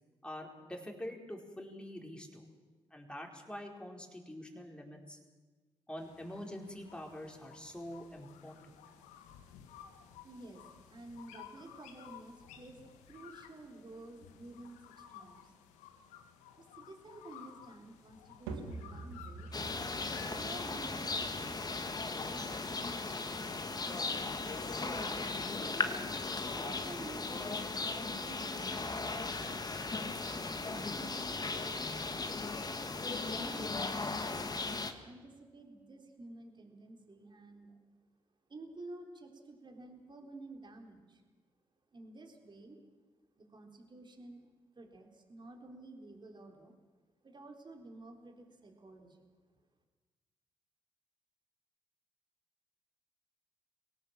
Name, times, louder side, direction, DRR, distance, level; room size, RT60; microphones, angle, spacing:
voice 1, 0.2-2.5 2.9-5.2 5.9-8.8, left 1 dB, 10° left, 1 dB, 4.6 m, -45 dB
sound 1, 6.0-20.4, left 9 dB, 75° left, 1.4 m, -55 dB
voice 2, 10.2-15.5 16.6-19.5 20.3-23.8 24.7-25.9 26.5-29.9 30.7-32.0 33.2-37.8 38.5-41.2 41.9-42.8 43.4-44.5 44.7-46.7 47.2-49.2, right 2 dB, 40° right, 3 dB, 4.0 m, -52 dB
sound 2, 18.5-34.9, right 3 dB, 80° right, 1.9 m, -52 dB
sound 3, 19.5-34.9, left 3 dB, 30° left, 1.9 m, -37 dB
23.5 x 17.5 x 7.5 m, 1.3 s
hypercardioid pair, 40°, 12 cm